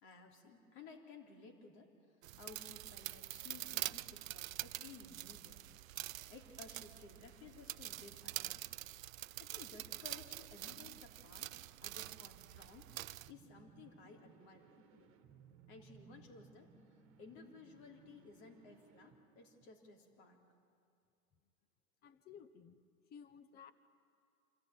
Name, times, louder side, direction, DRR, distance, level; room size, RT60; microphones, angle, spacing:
voice 1, 0.0-5.6 6.3-8.6 9.4-11.5 11.8-12.9 13.3-15.1 15.7-16.7 17.2-20.4, left 4 dB, 45° left, 3 dB, 3.5 m, -57 dB
sound 1, 2.2-13.3, right 14 dB, 65° right, 0.6 m, -46 dB
sound 2, 12.0-20.1, right 7 dB, 30° right, 1.9 m, -64 dB
voice 2, 22.0-22.8 23.1-23.7, left 7 dB, 20° left, 13 dB, 1.0 m, -56 dB
26.0 x 14.5 x 9.3 m, 2.4 s
hypercardioid pair, 120°, 44 cm